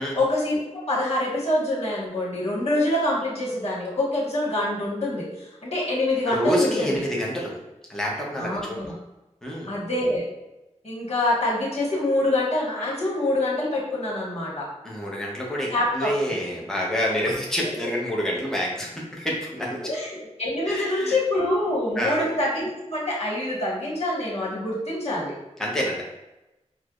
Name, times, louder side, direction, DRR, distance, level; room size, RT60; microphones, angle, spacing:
voice 1, 0.1-7.0 8.4-8.9 9.7-10.2 10.8-14.7 15.7-16.1 17.6-17.8 19.8-25.3, left 1 dB, 55° left, -5 dB, 1.3 m, -25 dB
voice 2, 6.3-7.6 7.9-8.9 9.4-9.7 14.8-19.8 20.7-21.1 22.0-22.2 25.6-26.0, equal, 5° left, -4 dB, 0.8 m, -27 dB
4.5 x 2.1 x 2.4 m, 0.98 s
wide cardioid pair, 60°, 12 cm